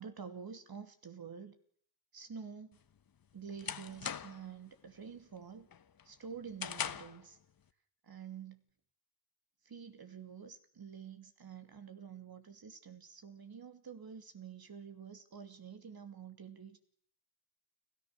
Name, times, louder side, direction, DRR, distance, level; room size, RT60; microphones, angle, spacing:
voice 1, 0.0-1.6 2.1-2.8 3.3-5.7 6.0-7.4 8.0-8.6 9.6-16.8, right 7 dB, 45° right, 8 dB, 2.7 m, -48 dB
sound 1, 2.8-4.6 5.0-5.3 5.7-7.3, left 8 dB, 45° left, 1.3 m, -41 dB
29.5 x 13.5 x 6.6 m, 0.64 s
hypercardioid pair, 40°, 49 cm